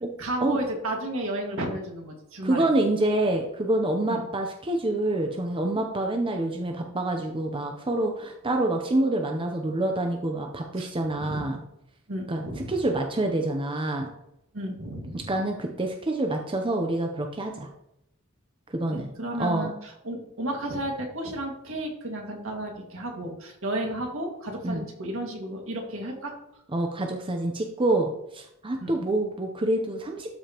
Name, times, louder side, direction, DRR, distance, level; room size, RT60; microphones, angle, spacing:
voice 1, 0.2-2.7 4.1-4.2 10.8-10.9 11.2-11.4 12.1-12.7 14.5-15.3 18.9-26.3 28.8-28.9, right 1 dB, 70° right, 1 dB, 2.0 m, -33 dB
voice 2, 2.4-11.6 12.3-14.1 15.1-17.7 18.7-19.1 19.4-19.7 24.6-24.8 26.7-30.3, right 1 dB, 25° right, 3 dB, 0.7 m, -27 dB
12.5 x 5.0 x 3.0 m, 0.82 s
head